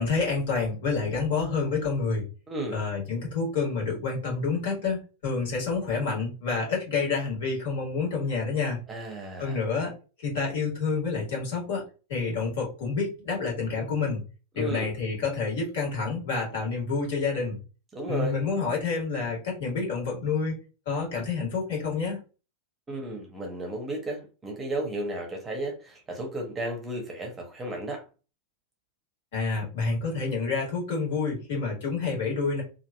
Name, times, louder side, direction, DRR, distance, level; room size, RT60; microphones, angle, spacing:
voice 1, 0.0-2.2 2.7-8.8 9.4-9.9 10.2-11.8 12.1-14.2 14.5-17.6 18.1-20.6 20.8-22.2 29.3-32.6, left 4 dB, 55° left, 1.5 m, -28 dB
voice 2, 2.5-2.8 8.9-9.6 14.6-14.9 17.9-18.4 22.9-28.0, right 1 dB, 15° right, 0.8 m, -33 dB
2.8 x 2.4 x 2.3 m
figure-of-eight pair, 90°, 0 cm